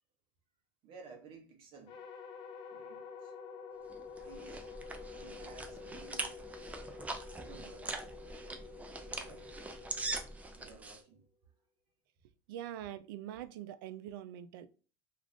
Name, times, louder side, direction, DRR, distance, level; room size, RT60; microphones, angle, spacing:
voice 1, 0.8-2.0 2.7-3.3 4.2-4.7 5.1-8.0 8.8-9.6 10.5-11.3, right 5 dB, 50° right, 0.7 m, -56 dB
sound 1, 1.9-11.2, left 5 dB, 50° left, 0.7 m, -49 dB
sound 2, 3.9-11.0, right 2 dB, 10° right, 0.4 m, -42 dB
voice 2, 12.5-14.7, right 11 dB, 80° right, 0.4 m, -44 dB
2.4 x 2.4 x 3.4 m
supercardioid pair, 100°, 11 cm